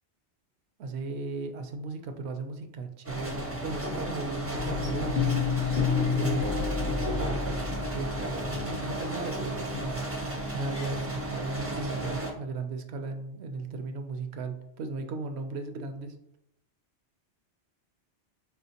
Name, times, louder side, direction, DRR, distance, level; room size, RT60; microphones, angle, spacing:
voice 1, 0.8-5.5 6.1-10.0 10.5-16.1, right 3 dB, 70° right, 7 dB, 0.8 m, -36 dB
sound 1, 3.0-12.3, right 1 dB, 20° right, 0.4 m, -34 dB
sound 2, 4.5-11.0 11.5-11.6, left 6 dB, 55° left, 0.6 m, -31 dB
4.3 x 3.1 x 2.8 m, 0.79 s
omnidirectional pair, 1.2 m